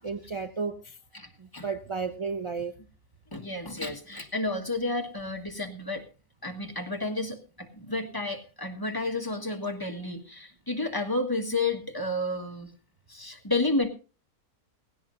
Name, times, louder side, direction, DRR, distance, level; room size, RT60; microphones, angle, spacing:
voice 1, 0.0-1.0 1.4-2.7, right 5 dB, 45° right, 0.3 m, -33 dB
voice 2, 1.1-1.7 3.3-6.1 6.4-12.7 13.1-13.9, left 2 dB, 15° left, 1.5 m, -31 dB
18.5 x 16.5 x 2.6 m
omnidirectional pair, 1.6 m